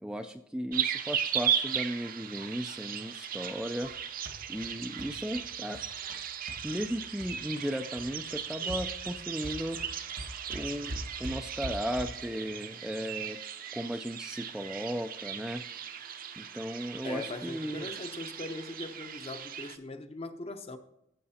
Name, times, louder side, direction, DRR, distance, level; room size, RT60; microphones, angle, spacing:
voice 1, 0.0-3.9 4.5-5.8 6.6-9.8 10.5-13.4 13.7-15.6 16.4-17.9, equal, 5° right, 0.3 m, -36 dB
sound 1, 0.7-19.8, right 8 dB, 45° right, 0.6 m, -37 dB
sound 2, 3.4-7.7 8.0-12.3, equal, 75° right, 1.3 m, -44 dB
voice 2, 17.0-20.8, left 2 dB, 30° left, 0.7 m, -40 dB
14.0 x 7.6 x 2.8 m
head